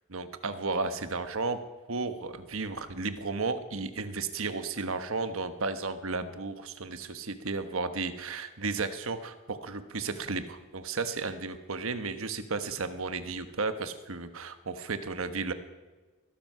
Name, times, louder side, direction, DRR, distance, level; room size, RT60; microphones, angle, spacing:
voice 1, 0.1-1.6 1.9-15.5, right 4 dB, 70° right, 10 dB, 1.2 m, -33 dB
20.5 x 12.5 x 5.6 m, 1.3 s
head